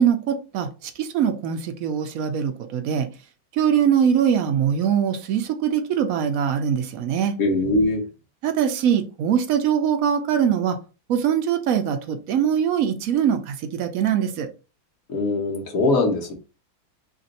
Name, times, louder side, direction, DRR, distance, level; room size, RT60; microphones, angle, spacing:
voice 1, 0.0-3.1 3.6-7.3 8.4-10.8 11.1-14.5, right 8 dB, 75° right, 0.7 m, -22 dB
voice 2, 7.4-8.0 15.1-16.3, left 2 dB, 55° left, 1.4 m, -21 dB
3.5 x 2.5 x 4.0 m
omnidirectional pair, 2.0 m